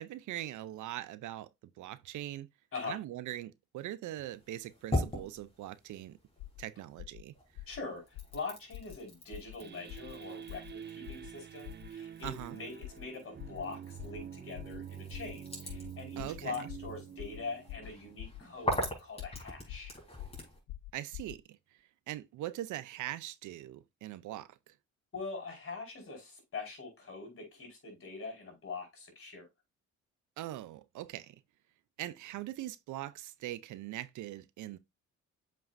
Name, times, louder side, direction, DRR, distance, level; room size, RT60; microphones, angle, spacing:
voice 1, 0.0-1.5 1.8-2.5 2.8-6.2 6.6-7.3 12.2-12.6 16.2-16.6 20.9-21.6 22.1-24.7 30.4-31.4 32.0-34.8, right 14 dB, 80° right, 0.6 m, -41 dB
sound 1, 4.3-7.0 7.3-20.6, left 1 dB, 20° left, 4.1 m, -42 dB
sound 2, 6.4-6.6 7.0-7.2 7.5-7.8 8.1-8.4 8.7-9.0 9.3-9.6 9.9-10.1 10.5-10.7 11.0-11.3 11.6-11.9 12.2-12.5 12.8-13.1 13.4-13.6 14.0-14.2 14.5-14.8 15.1-15.3 15.7-15.9 16.2-16.4 16.7-16.9 17.2-17.4 17.7-17.9 18.2-18.4 18.7-18.9 19.2-19.4 19.7-19.9 20.2-20.4 20.7-21.4, left 16 dB, 90° left, 0.6 m, -45 dB
voice 2, 7.7-8.0 8.3-19.9 25.1-29.5, left 4 dB, 45° left, 4.8 m, -43 dB
sound 3, 9.6-18.9, right 8 dB, 35° right, 0.8 m, -47 dB
7.4 x 5.7 x 2.6 m
cardioid pair, 90°, 30 cm